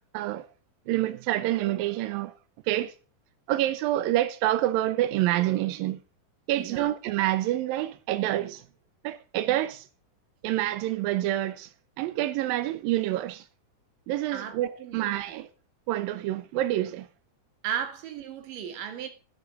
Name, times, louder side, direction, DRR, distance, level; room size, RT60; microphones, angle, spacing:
voice 1, 0.1-0.5 0.9-2.4 2.7-2.9 3.5-6.0 6.5-8.6 9.0-9.9 10.4-11.7 12.0-13.5 14.1-15.5 15.9-17.1, right 14 dB, 80° right, 2.1 m, -27 dB
voice 2, 6.6-6.9 14.3-15.4 17.6-19.1, right 9 dB, 60° right, 2.9 m, -35 dB
12.0 x 12.0 x 4.0 m
omnidirectional pair, 4.9 m